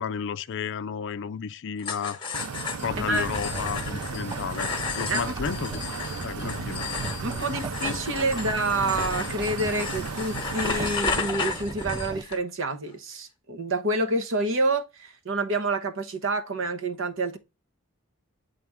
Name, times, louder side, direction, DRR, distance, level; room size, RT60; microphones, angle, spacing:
voice 1, 0.0-2.3 2.8-5.8 6.2-6.8, left 7 dB, 55° left, 0.4 m, -32 dB
sound 1, 1.8-12.4, left 5 dB, 20° left, 1.1 m, -33 dB
sound 2, 2.3-11.0, right 5 dB, 90° right, 0.5 m, -36 dB
sound 3, 2.8-12.2, right 2 dB, 20° right, 0.3 m, -38 dB
voice 2, 7.2-17.4, right 2 dB, 60° right, 1.0 m, -28 dB
8.6 x 3.4 x 3.5 m
head